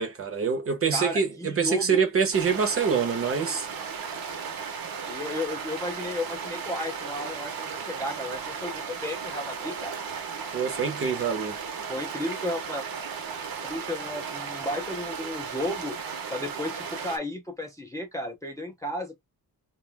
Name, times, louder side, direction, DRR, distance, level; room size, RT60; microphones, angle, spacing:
voice 1, 0.0-3.7 10.5-11.6, right 6 dB, 35° right, 0.7 m, -25 dB
voice 2, 0.9-2.0 5.1-9.9 11.9-12.8 13.6-16.0 16.3-19.2, left 1 dB, 10° left, 0.4 m, -33 dB
sound 1, 2.3-17.2, right 6 dB, 65° right, 0.8 m, -35 dB
2.3 x 2.3 x 3.2 m
wide cardioid pair, 175°, 38 cm